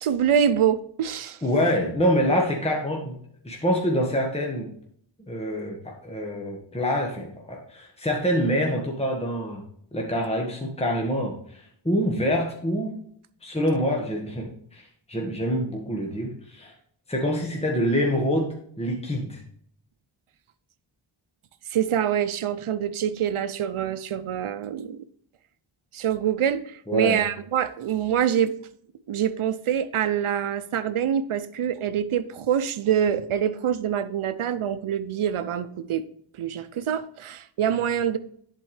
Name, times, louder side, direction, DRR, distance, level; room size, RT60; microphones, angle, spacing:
voice 1, 0.0-1.4 21.7-25.1 25.9-28.5 29.1-36.0 36.4-38.2, right 9 dB, 85° right, 0.6 m, -25 dB
voice 2, 1.4-3.2 3.4-4.7 5.3-9.6 9.9-13.0 13.4-16.7 17.1-19.4 26.9-27.2, equal, 15° left, 1.5 m, -26 dB
10.5 x 4.6 x 3.2 m
cardioid pair, 50°, 48 cm